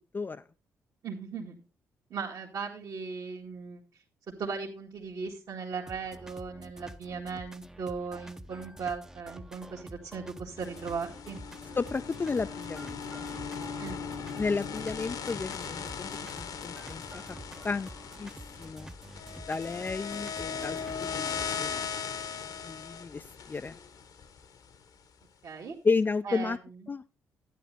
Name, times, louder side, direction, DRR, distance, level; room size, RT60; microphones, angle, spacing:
voice 1, 1.0-1.6 2.1-4.0 4.4-11.4 13.8-14.0 25.4-25.8 26.2-26.9, right 5 dB, 55° right, -3 dB, 1.7 m, -38 dB
sound 1, 5.9-21.9, right 1 dB, 5° right, 0.7 m, -48 dB
sound 2, 10.6-24.8, left 6 dB, 60° left, 1.1 m, -38 dB
voice 2, 11.8-13.3 14.4-17.2 17.6-17.9 18.2-18.3 18.6-18.9 19.5-21.7 22.6-23.8 25.8-26.6 26.9-27.0, left 4 dB, 25° left, 10 dB, 0.4 m, -32 dB
12.0 x 9.9 x 3.4 m, 0.34 s
hypercardioid pair, 40°, 7 cm